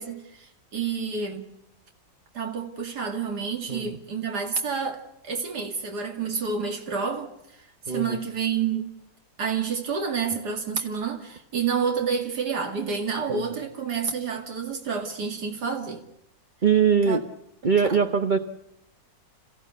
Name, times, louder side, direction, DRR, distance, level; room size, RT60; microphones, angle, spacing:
voice 1, 0.0-1.5 2.3-7.3 7.6-8.9 9.4-16.0 17.1-17.2 17.8-18.0, right 6 dB, 90° right, 2.8 m, -29 dB
voice 2, 7.9-8.2 13.3-13.4 16.6-17.2 17.6-18.4, right 6 dB, 35° right, 1.1 m, -21 dB
28.5 x 15.5 x 8.2 m
omnidirectional pair, 1.7 m